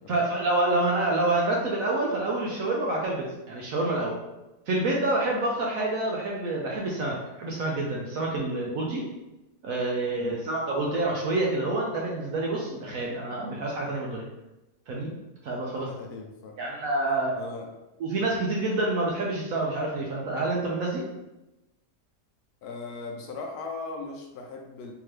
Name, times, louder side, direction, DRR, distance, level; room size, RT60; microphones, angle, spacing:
voice 1, 0.1-4.1 4.7-9.1 9.6-14.3 14.9-15.1 15.4-15.9 16.6-17.3 18.0-21.1, right 2 dB, 65° right, -2 dB, 0.9 m, -27 dB
voice 2, 15.6-16.6 17.1-17.7 22.6-24.9, left 3 dB, 75° left, 2 dB, 1.0 m, -39 dB
3.5 x 2.8 x 3.1 m, 0.97 s
omnidirectional pair, 1.7 m